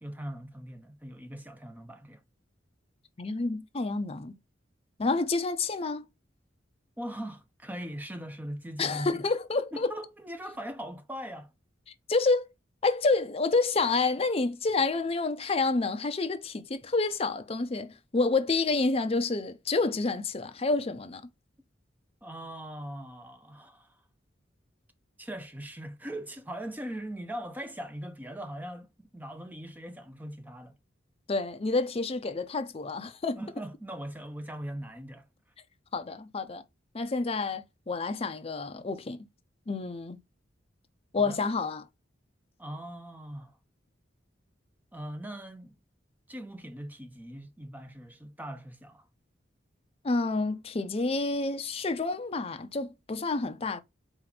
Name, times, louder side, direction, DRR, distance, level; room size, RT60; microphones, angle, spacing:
voice 1, 0.0-2.2 7.0-9.2 9.7-11.5 22.2-24.0 25.2-30.7 33.3-35.3 41.2-41.4 42.6-43.6 44.9-45.8 46.3-49.1, right 1 dB, 10° right, 0.7 m, -40 dB
voice 2, 3.2-4.4 5.0-6.0 8.8-9.9 12.1-12.5 12.8-21.2 31.3-33.4 35.9-36.6 36.9-39.2 39.7-40.2 41.1-41.9 50.0-53.8, left 3 dB, 30° left, 0.5 m, -29 dB
4.3 x 3.0 x 4.0 m
head